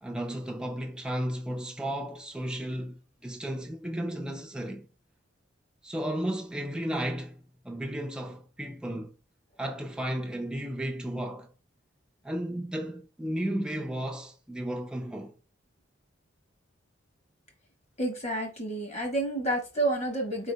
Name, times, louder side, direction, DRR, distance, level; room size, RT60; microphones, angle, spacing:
voice 1, 0.0-4.9 5.8-7.4 7.6-9.1 9.6-11.5 12.2-15.3, right 1 dB, 5° right, 0.4 m, -34 dB
voice 2, 18.0-20.5, right 1 dB, 35° left, 1.1 m, -29 dB
4.2 x 3.7 x 2.2 m
head